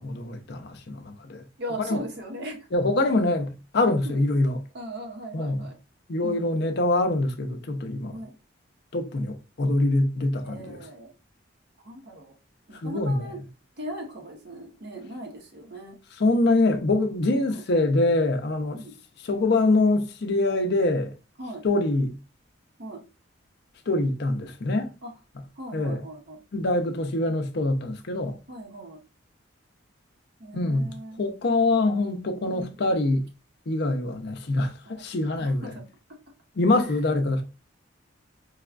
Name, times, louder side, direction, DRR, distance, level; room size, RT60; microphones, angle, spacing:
voice 1, 0.0-1.4 1.8-2.0 2.7-4.6 5.3-5.7 6.1-8.2 8.9-10.8 12.8-13.2 16.2-18.8 19.2-21.2 21.6-22.1 23.9-24.9 25.7-26.0 26.5-28.3 30.5-33.3 33.7-35.7 36.6-37.4, left 2 dB, 55° left, 0.5 m, -24 dB
voice 2, 1.6-2.7 4.0-4.2 4.7-5.8 6.2-6.5 8.1-8.3 10.4-11.1 11.8-12.3 12.7-13.4 13.8-16.0 17.5-17.6 18.7-18.9 21.4-21.6 22.8-23.0 25.0-25.1 25.6-26.4 28.5-29.0 30.4-31.2 32.5-32.8 34.9-35.0 35.3-35.8 36.8-37.0, right 1 dB, 55° right, 0.9 m, -38 dB
4.7 x 2.3 x 2.3 m
head